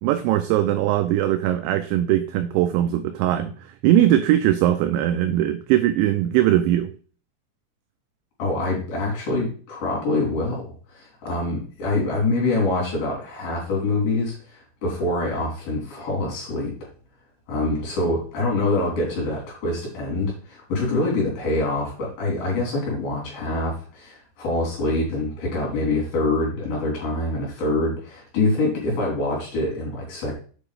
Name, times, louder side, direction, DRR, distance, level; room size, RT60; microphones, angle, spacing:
voice 1, 0.0-3.5 3.8-6.9, right 12 dB, 90° right, 10 dB, 2.6 m, -20 dB
voice 2, 8.4-16.9 17.5-30.3, left 2 dB, 50° left, -3 dB, 4.9 m, -25 dB
8.7 x 5.3 x 5.0 m, 0.41 s
omnidirectional pair, 5.9 m